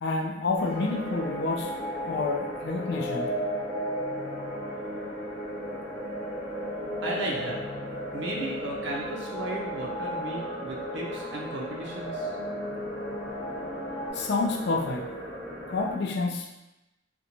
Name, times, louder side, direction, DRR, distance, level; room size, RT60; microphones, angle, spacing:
voice 1, 0.0-1.7 2.1-3.3 14.1-15.1 15.7-16.6, left 3 dB, 55° left, 1 dB, 0.4 m, -29 dB
sound 1, 0.6-15.9, equal, 5° left, 0.7 m, -38 dB
sound 2, 0.6-14.1, equal, 30° right, 0.7 m, -36 dB
voice 2, 7.0-7.6 8.1-12.3, right 1 dB, 60° right, -2 dB, 0.4 m, -35 dB
2.5 x 2.2 x 2.9 m, 0.98 s
head